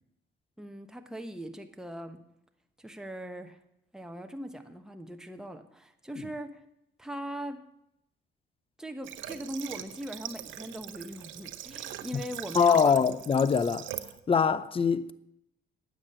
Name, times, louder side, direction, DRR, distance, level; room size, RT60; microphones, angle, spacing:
voice 1, 0.6-2.2 2.8-3.6 3.9-6.6 7.0-7.6 8.8-13.0, right 1 dB, 5° right, 1.1 m, -40 dB
Water / Water tap faucet, 9.0-14.2, right 11 dB, 75° right, 0.8 m, -41 dB
voice 2, 12.5-13.9 14.3-15.1, left 6 dB, 30° left, 0.6 m, -23 dB
9.7 x 8.4 x 7.7 m
cardioid pair, 90°, 20 cm